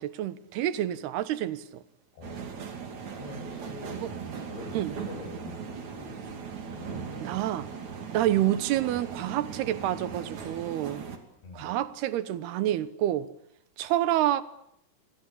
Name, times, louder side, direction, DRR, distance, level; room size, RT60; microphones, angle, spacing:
voice 1, 0.0-1.8 3.9-4.1 4.7-4.9 7.2-7.7 8.1-11.0 11.5-13.3 13.8-14.4, right 13 dB, 80° right, 3.1 m, -28 dB
voice 2, 2.1-2.5 3.2-4.0 4.4-6.3 6.7-7.3 11.4-11.8, left 3 dB, 80° left, 8.9 m, -45 dB
sound 1, 2.2-11.2, right 6 dB, 50° right, 3.9 m, -39 dB
26.5 x 24.5 x 8.6 m
omnidirectional pair, 4.7 m